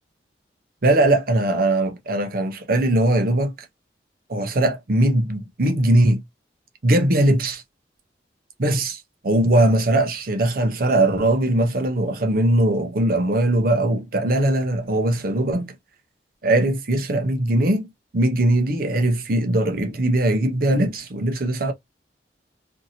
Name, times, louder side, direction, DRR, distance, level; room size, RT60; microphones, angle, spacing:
voice 1, 0.8-3.5 4.3-6.2 6.8-7.6 8.6-15.7 16.4-21.7, right 1 dB, 55° right, 0.6 m, -20 dB
2.6 x 2.6 x 2.7 m
head